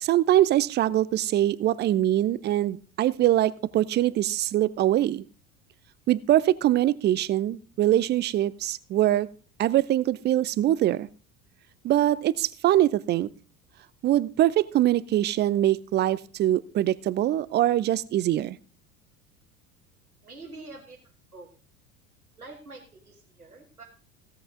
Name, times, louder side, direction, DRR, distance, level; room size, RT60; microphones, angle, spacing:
voice 1, 0.0-5.2 6.1-9.3 9.6-11.1 11.8-13.3 14.0-18.6, right 13 dB, 25° right, 19 dB, 0.5 m, -23 dB
voice 2, 20.2-21.0 21.3-21.5 22.4-23.8, right 3 dB, 90° right, 0 dB, 1.4 m, -45 dB
16.5 x 8.1 x 3.7 m, 0.38 s
figure-of-eight pair, 70°, 43 cm